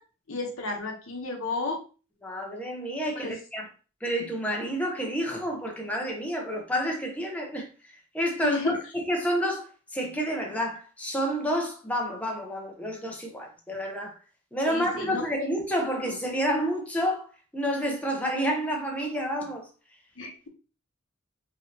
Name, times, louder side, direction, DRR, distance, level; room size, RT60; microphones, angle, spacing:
voice 1, 0.3-1.8 3.1-3.3 8.4-8.8 14.7-15.5 20.2-20.5, left 3 dB, 80° left, 1.0 m, -32 dB
voice 2, 2.2-3.7 4.0-7.7 8.1-8.8 9.1-14.2 14.5-19.6, equal, 5° left, 0.7 m, -29 dB
4.8 x 2.7 x 2.8 m
head